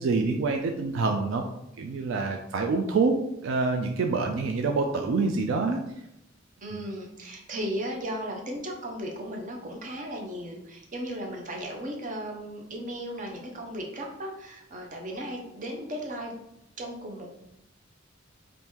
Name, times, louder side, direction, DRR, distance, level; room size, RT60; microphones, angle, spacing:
voice 1, 0.0-1.4 1.8-3.1 3.4-5.8, right 4 dB, 70° right, 3 dB, 0.3 m, -26 dB
voice 2, 6.6-16.3 16.8-17.3, equal, 40° right, 0 dB, 0.6 m, -36 dB
2.9 x 2.6 x 3.5 m, 0.82 s
head